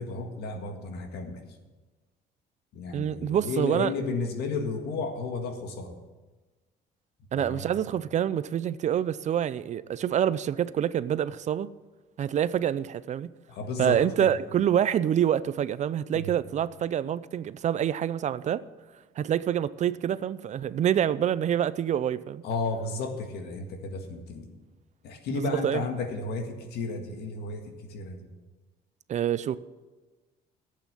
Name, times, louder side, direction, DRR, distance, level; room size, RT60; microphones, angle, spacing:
voice 1, 0.0-1.5 2.7-6.0 7.3-7.7 13.5-14.3 16.1-16.3 22.4-24.5 25.0-28.3, left 3 dB, 75° left, 1.9 m, -33 dB
voice 2, 2.9-3.9 7.3-11.7 12.2-13.3 13.8-18.6 19.2-22.4 25.4-25.8 29.1-29.6, right 10 dB, 45° right, 0.4 m, -26 dB
11.5 x 8.4 x 7.3 m
cardioid pair, 110°, 17 cm